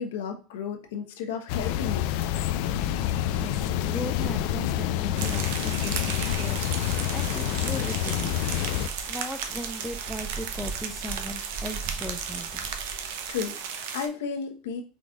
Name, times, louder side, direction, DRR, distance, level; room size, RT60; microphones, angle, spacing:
voice 1, 0.0-2.1 13.3-14.8, left 6 dB, 90° left, 4 dB, 1.0 m, -33 dB
sound 1, 1.5-8.9, left 11 dB, 65° left, 0.4 m, -27 dB
voice 2, 3.3-8.5 9.0-12.6, left 1 dB, 5° left, 6 dB, 0.4 m, -38 dB
sound 2, 5.2-14.1, right 7 dB, 80° right, 0.8 m, -35 dB
sound 3, 7.9-13.8, right 4 dB, 30° right, 2.4 m, -42 dB
4.9 x 4.1 x 2.4 m, 0.34 s
supercardioid pair, 145°, 0 cm